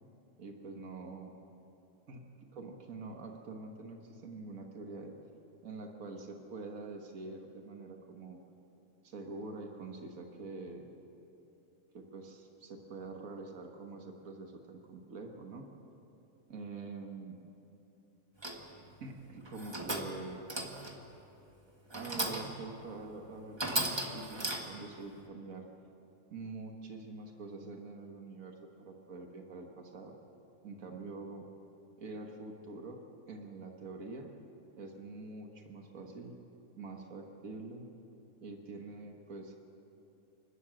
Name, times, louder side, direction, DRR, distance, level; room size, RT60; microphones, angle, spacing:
voice 1, 0.4-1.3 2.1-5.2 5.6-8.4 9.0-10.9 11.9-15.7 16.5-17.4 19.0-20.5 21.9-25.7 26.3-30.1 30.6-31.5 32.0-33.0 33.3-34.3 34.8-36.4 36.8-37.9 38.4-39.6, right 3 dB, 85° right, 3 dB, 1.8 m, -45 dB
sound 1, 18.4-18.8 19.5-20.2 20.5-21.0 21.9-22.6 23.1-23.2 23.6-24.9, right 1 dB, 20° right, 1.6 m, -36 dB
28.0 x 12.5 x 7.6 m, 2.9 s
omnidirectional pair, 1.4 m